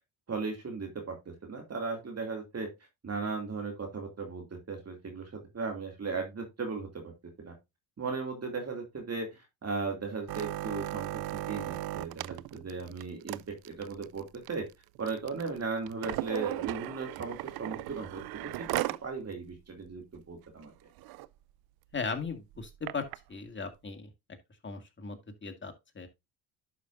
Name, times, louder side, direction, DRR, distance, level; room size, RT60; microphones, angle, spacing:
voice 1, 0.3-2.7 3.0-7.1 7.4-7.5 8.0-9.3 9.6-11.2 11.5-14.7 15.0-20.7, right 4 dB, 35° right, 2.6 m, -37 dB
sound 1, 10.3-19.1 19.5-19.6 19.9-20.2 20.6-20.7 21.0-21.3 21.9-23.2 23.9-24.0, right 17 dB, 55° right, 0.5 m, -37 dB
voice 2, 21.9-23.0 23.3-24.1 24.6-26.1, left 4 dB, 25° left, 2.1 m, -37 dB
11.5 x 5.7 x 2.6 m
supercardioid pair, 70°, 44 cm